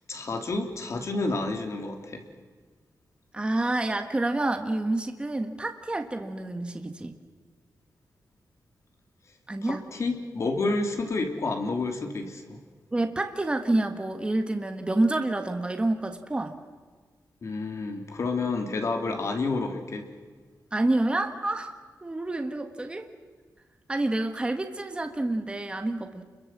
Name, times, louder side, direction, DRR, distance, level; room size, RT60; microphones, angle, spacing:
voice 1, 0.1-2.2 9.6-12.6 17.4-20.1, left 3 dB, 50° left, 4 dB, 3.1 m, -29 dB
voice 2, 3.3-7.1 9.5-9.8 12.9-16.6 20.7-21.7 22.0-23.1 23.9-26.2, right 2 dB, 15° right, 6 dB, 1.5 m, -28 dB
29.0 x 22.5 x 7.5 m, 1.5 s
wide cardioid pair, 160°, 7 cm